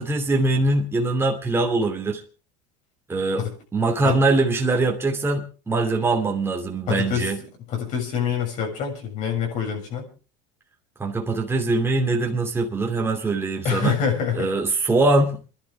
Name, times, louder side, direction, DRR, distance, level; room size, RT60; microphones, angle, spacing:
voice 1, 0.0-2.2 3.1-3.5 3.7-7.4 11.0-14.0 14.3-15.4, right 2 dB, 15° right, 2.5 m, -22 dB
voice 2, 6.9-7.3 7.7-10.0 13.6-14.5, left 6 dB, 60° left, 7.1 m, -25 dB
29.0 x 11.5 x 3.5 m
supercardioid pair, 95°, 14 cm